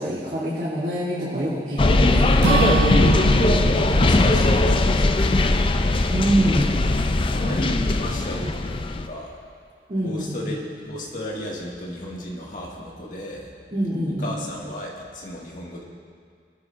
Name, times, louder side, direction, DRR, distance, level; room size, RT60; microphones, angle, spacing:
voice 1, 0.0-2.4 6.1-6.7 7.4-7.5 9.9-10.5 13.7-14.4, right 1 dB, 45° right, -12 dB, 2.9 m, -25 dB
sound 1, 1.8-9.1, left 2 dB, 30° left, 0.4 m, -19 dB
Acoustic guitar / Strum, 2.4-6.4, right 6 dB, 75° right, 0.4 m, -28 dB
voice 2, 3.2-5.5 6.9-9.3 10.0-13.5 14.0-15.8, left 1 dB, 45° left, -2 dB, 1.8 m, -34 dB
22.0 x 10.5 x 2.5 m, 2.1 s
head